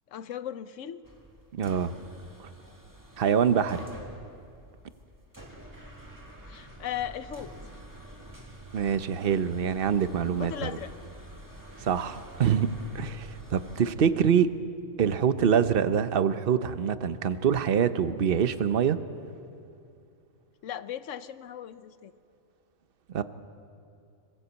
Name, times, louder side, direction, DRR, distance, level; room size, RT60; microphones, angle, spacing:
voice 1, 0.1-1.0 6.5-7.5 10.4-10.9 20.6-22.1, left 10 dB, 75° left, 12 dB, 1.1 m, -37 dB
sound 1, 1.0-13.9, right 1 dB, 15° right, 1.9 m, -48 dB
voice 2, 1.5-1.9 3.2-3.8 8.7-10.7 11.8-14.5 15.0-19.0 23.1-23.2, right 7 dB, 50° right, 11 dB, 1.0 m, -25 dB
26.0 x 17.5 x 8.2 m, 2.5 s
omnidirectional pair, 1.3 m